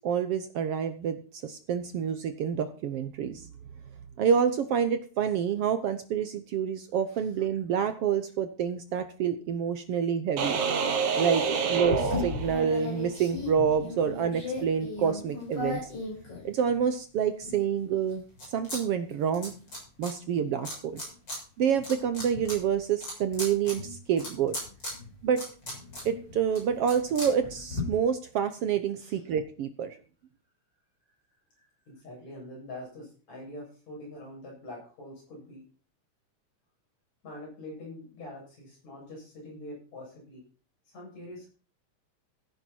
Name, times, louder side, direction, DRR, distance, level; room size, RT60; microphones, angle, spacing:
voice 1, 0.0-3.5 4.2-10.6 11.2-11.4 11.7-15.9 16.4-19.5 20.0-21.0 21.6-24.6 25.2-25.4 26.0-30.0, right 7 dB, 65° right, 9 dB, 1.7 m, -28 dB
sound 1, 10.4-13.0, right 5 dB, 90° right, 3.1 m, -28 dB
sound 2, 11.8-16.9 17.4-18.8 19.1-20.1 20.6-21.4 21.7-27.8, left 2 dB, 35° left, 7.8 m, -37 dB
voice 2, 31.6-35.7 37.2-40.4 40.9-41.5, left 1 dB, 65° left, -2 dB, 9.4 m, -44 dB
15.0 x 10.5 x 4.5 m, 0.38 s
omnidirectional pair, 3.3 m